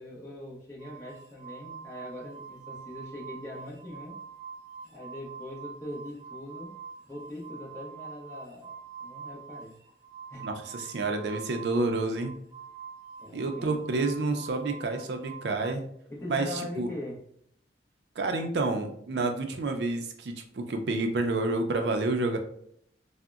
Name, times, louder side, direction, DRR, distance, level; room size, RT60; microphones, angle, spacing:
voice 1, 0.0-4.1 4.8-6.7 7.0-8.7 9.0-9.8 10.3-10.5 13.2-13.8 16.1-17.2, left 1 dB, 15° left, -5 dB, 0.8 m, -41 dB
sound 1, 0.8-15.7, right 6 dB, 20° right, 0.8 m, -45 dB
voice 2, 10.4-12.3 13.3-15.8 16.3-16.9 18.2-22.4, right 2 dB, 75° right, 5 dB, 0.4 m, -29 dB
3.6 x 2.1 x 2.3 m, 0.68 s
head